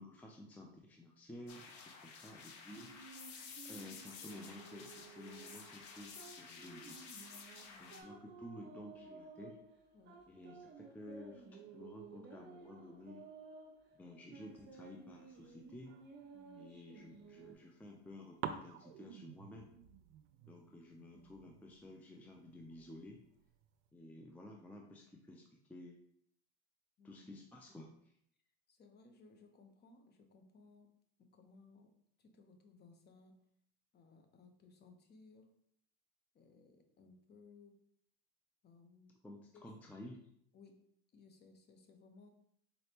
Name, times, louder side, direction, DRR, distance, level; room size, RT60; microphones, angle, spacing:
voice 1, 0.0-2.9 3.6-7.3 7.8-9.6 10.3-13.2 13.9-16.0 16.5-19.7 20.4-23.2 23.9-26.0 27.0-28.1 39.2-40.3, left 1 dB, 5° left, 0 dB, 0.4 m, -53 dB
sound 1, 1.5-8.0, left 5 dB, 65° left, 0.9 m, -52 dB
sound 2, 2.7-17.5, right 4 dB, 35° right, 0.9 m, -56 dB
voice 2, 7.7-8.0 9.9-10.2 16.3-16.7 21.1-21.3 27.0-27.2 28.7-30.9 31.2-31.9 32.2-33.3 33.9-35.5 36.3-37.8 38.6-39.1 39.5-39.7 40.5-40.8 41.1-42.3, left 4 dB, 35° left, 5 dB, 0.7 m, -62 dB
sound 3, 14.4-16.6 17.2-18.1 18.4-23.9, right 9 dB, 80° right, 0.5 m, -51 dB
4.0 x 3.3 x 2.8 m, 0.69 s
supercardioid pair, 100°, 31 cm